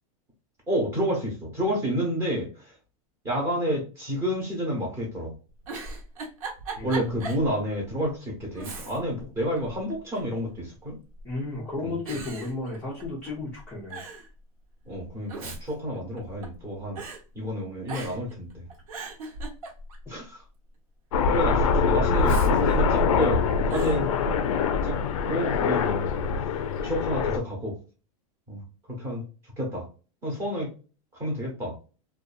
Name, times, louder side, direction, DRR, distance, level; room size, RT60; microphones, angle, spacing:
voice 1, 0.7-2.7 3.2-5.3 6.8-11.0 11.8-12.3 14.9-17.0 17.3-18.7 20.1-20.4 21.3-24.1 24.8-25.0 25.2-26.1 26.8-27.8 28.5-28.6 29.0-29.2 29.6-29.9 30.2-30.7 31.1-31.7, equal, 15° right, -1 dB, 0.8 m, -29 dB
Giggle, 5.5-7.5 7.9-8.0 8.5-9.2 9.6-10.4 11.1-11.5 12.1-13.3 13.6-13.7 13.9-14.3 15.1-16.6 17.0-17.2 17.9-18.3 18.7-20.1 22.1-23.3 23.7-24.0, right 3 dB, 65° right, 1.0 m, -38 dB
voice 2, 6.8-7.2 11.2-14.0, left 2 dB, 5° left, -6 dB, 0.4 m, -33 dB
Aircraft, 21.1-27.4, left 5 dB, 60° left, 0.4 m, -24 dB
2.5 x 2.3 x 2.5 m, 0.35 s
supercardioid pair, 180°, 19 cm